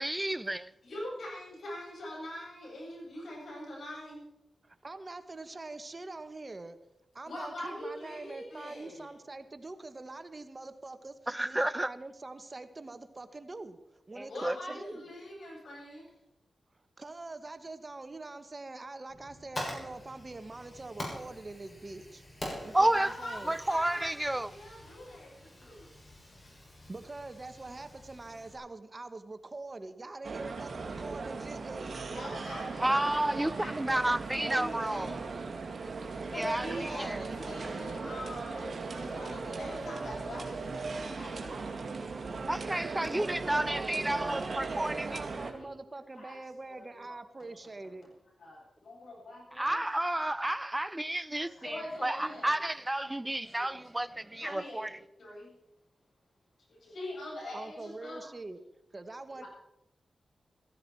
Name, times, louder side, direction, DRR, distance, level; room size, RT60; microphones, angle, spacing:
voice 1, 0.0-0.7 11.3-11.9 14.2-14.6 22.7-23.1 23.5-24.5 32.8-33.5 33.8-35.1 36.3-36.7 37.0-37.2 42.5-45.3 49.6-54.9, right 1 dB, 15° right, 0.4 m, -31 dB
voice 2, 0.8-4.2 7.2-9.1 14.3-16.1 22.9-25.9 32.0-35.3 36.3-41.9 43.0-43.2 44.7-44.9 45.4-45.7 46.1-46.4 46.7-47.2 48.4-49.8 50.7-50.8 51.3-52.5 53.1-53.3 53.5-53.7 54.4-55.5 56.7-58.3 59.4-59.5, left 1 dB, 75° left, 7.5 m, -43 dB
voice 3, 4.6-6.8 7.1-11.2 11.4-13.8 14.1-15.1 17.0-22.2 22.6-23.6 26.6-33.8 36.7-37.4 43.1-48.1 57.5-58.6 58.9-59.5, right 2 dB, 40° right, 1.2 m, -44 dB
Fire, 19.1-28.5, left 1 dB, 35° left, 6.9 m, -45 dB
sound 1, 30.2-45.5, right 4 dB, 60° right, 2.1 m, -38 dB
15.5 x 15.0 x 4.6 m
cardioid pair, 50°, 0 cm